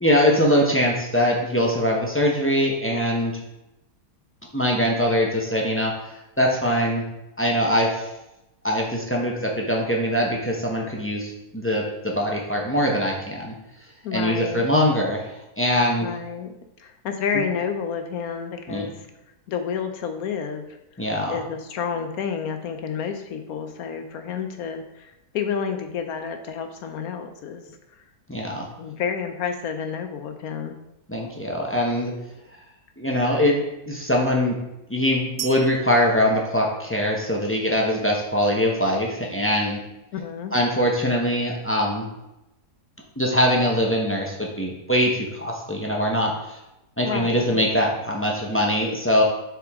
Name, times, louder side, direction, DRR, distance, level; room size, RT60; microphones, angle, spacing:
voice 1, 0.0-3.4 4.5-5.9 6.4-7.1 7.4-8.1 8.6-13.5 14.1-16.1 17.3-17.4 18.7-18.9 21.0-21.4 28.3-28.7 31.1-32.1 33.0-34.6 34.9-39.8 40.5-42.1 43.2-46.6 47.0-49.2, equal, 10° left, -2 dB, 0.6 m, -22 dB
voice 2, 14.0-14.7 16.0-16.5 16.8-19.1 19.5-20.8 21.3-27.6 27.9-28.0 28.8-30.8 40.1-40.5 47.0-47.6, left 6 dB, 65° left, 6 dB, 1.0 m, -30 dB
sound 1, 35.4-37.3, right 9 dB, 90° right, 0.6 m, -38 dB
7.0 x 4.7 x 3.6 m, 0.92 s
omnidirectional pair, 1.8 m